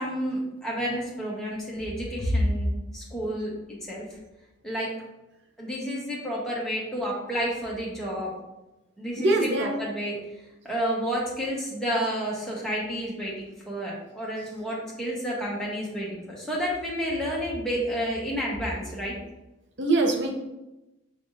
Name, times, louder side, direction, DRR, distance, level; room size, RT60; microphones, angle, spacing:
voice 1, 0.0-3.5 3.8-4.0 4.6-4.9 5.6-8.3 9.0-10.2 10.6-19.2, equal, 5° left, -6 dB, 1.0 m, -30 dB
voice 2, 9.2-9.7 19.8-20.3, right 2 dB, 55° right, 1 dB, 0.7 m, -23 dB
5.9 x 3.5 x 2.6 m, 0.97 s
head